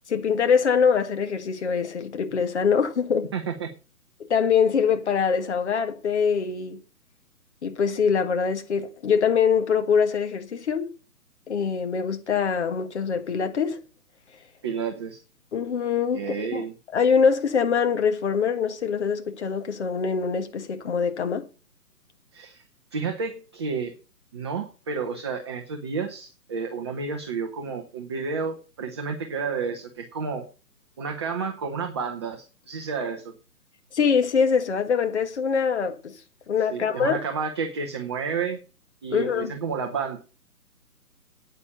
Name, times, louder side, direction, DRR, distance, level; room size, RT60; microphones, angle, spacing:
voice 1, 0.1-3.3 4.2-6.8 7.6-10.9 11.5-13.8 15.5-16.6 16.9-21.5 33.9-36.2 36.5-37.2 39.1-39.5, left 6 dB, 45° left, 1.6 m, -23 dB
voice 2, 3.3-3.7 14.6-15.2 16.1-16.7 22.3-22.6 22.9-23.9 24.3-30.5 31.0-33.3 36.7-38.6 39.0-40.2, right 5 dB, 15° right, 0.7 m, -31 dB
9.3 x 8.8 x 6.7 m
figure-of-eight pair, 135°, 47 cm